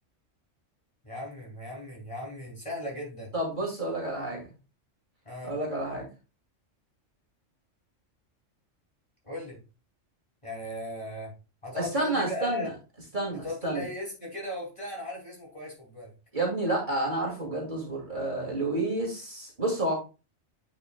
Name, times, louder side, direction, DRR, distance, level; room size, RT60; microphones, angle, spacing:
voice 1, 1.0-3.3 5.2-5.5 9.2-9.6 10.4-11.3 11.6-12.7 13.4-16.1, left 1 dB, 25° left, -2 dB, 2.6 m, -37 dB
voice 2, 3.3-4.5 5.4-6.1 11.7-12.7 13.1-13.8 16.3-19.9, right 2 dB, 40° right, -2 dB, 2.4 m, -30 dB
9.0 x 5.5 x 2.2 m, 0.31 s
omnidirectional pair, 1.3 m